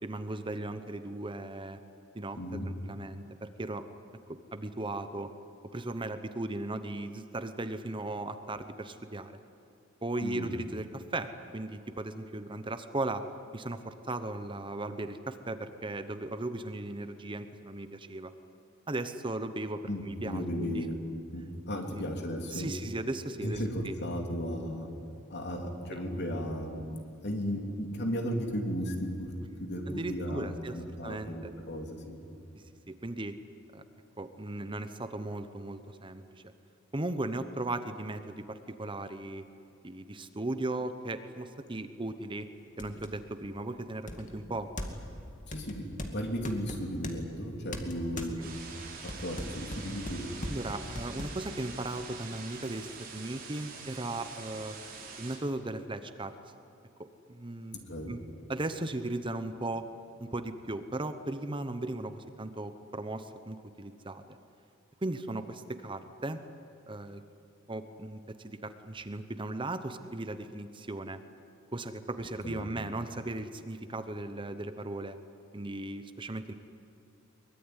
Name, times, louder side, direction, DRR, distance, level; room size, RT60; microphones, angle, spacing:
voice 1, 0.0-1.8 2.1-3.8 4.3-5.3 5.7-9.4 10.0-13.2 13.5-18.3 18.9-20.8 21.7-22.0 22.5-24.0 25.9-26.0 29.9-31.5 32.5-33.4 33.7-33.8 34.2-36.5 36.9-39.5 39.8-42.5 42.8-44.7 48.2-48.5 50.5-54.8 55.2-56.3 57.3-57.8 58.1-58.2 58.5-59.9 60.2-64.2 65.0-66.4 66.9-67.2 67.7-71.2 71.7-75.2 75.5-76.5, right 2 dB, 25° right, 10 dB, 0.9 m, -37 dB
voice 2, 2.4-2.7 10.2-10.5 19.9-21.0 21.3-22.7 23.4-24.9 25.3-26.8 27.2-29.3 29.6-32.2 45.4-48.5 49.0-50.3 57.7-58.1 72.4-72.7, equal, 55° left, 2 dB, 3.4 m, -35 dB
sound 1, 41.7-41.8 42.3-42.4 42.8-43.2 44.1-45.1 45.5-47.2 47.7-48.4 48.8-51.3, left 1 dB, 40° left, 2.3 m, -39 dB
sound 2, 48.4-55.4, right 4 dB, 45° right, 5.5 m, -45 dB
23.0 x 22.0 x 9.8 m, 2.6 s
head